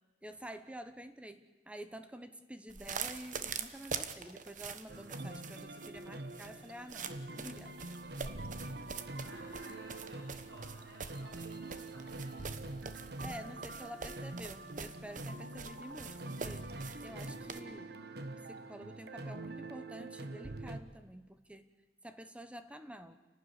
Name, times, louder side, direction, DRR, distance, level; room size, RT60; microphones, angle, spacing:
voice 1, 0.2-7.8 13.2-16.7 17.0-18.0 18.5-21.7 22.0-23.2, equal, 5° right, 10 dB, 1.0 m, -49 dB
sound 1, 2.7-17.6, right 6 dB, 45° right, 1.1 m, -44 dB
sound 2, 4.9-20.8, right 2 dB, 65° right, 1.3 m, -45 dB
voice 2, 8.8-12.5, right 1 dB, 90° right, -4 dB, 7.6 m, -56 dB
29.5 x 12.5 x 9.9 m, 1.2 s
head